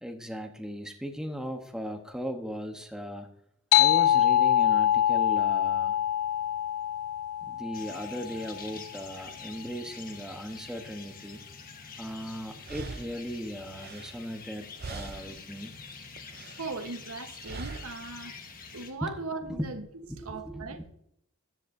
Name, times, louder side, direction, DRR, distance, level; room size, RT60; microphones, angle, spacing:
voice 1, 0.0-3.3 3.8-6.0 7.4-11.4 12.0-15.7 19.0-19.1 19.4-19.7 20.0-20.9, equal, 5° right, 1.0 m, -37 dB
sound 1, 3.7-8.7, left 11 dB, 80° left, 0.4 m, -24 dB
sound 2, 7.7-18.9, left 5 dB, 40° left, 1.4 m, -46 dB
sound 3, 12.1-12.2 12.6-14.5 14.8-15.5 15.8-16.7 17.4-18.1, right 4 dB, 45° right, 0.5 m, -42 dB
voice 2, 16.6-18.3 18.7-19.8 20.2-20.9, right 3 dB, 80° right, 1.2 m, -38 dB
13.5 x 10.5 x 2.7 m
head